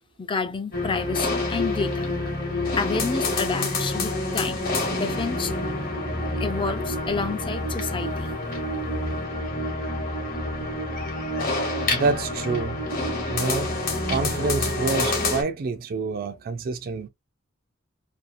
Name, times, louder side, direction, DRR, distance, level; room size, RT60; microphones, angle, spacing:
voice 1, 0.2-2.1 2.8-5.5 6.4-8.3, left 4 dB, 25° left, 0.4 m, -29 dB
sound 1, 0.7-15.4, left 2 dB, 50° left, 0.9 m, -27 dB
voice 2, 11.9-12.9 13.3-13.8 14.1-17.1, right 4 dB, 50° right, 0.3 m, -27 dB
2.7 x 2.3 x 2.4 m
head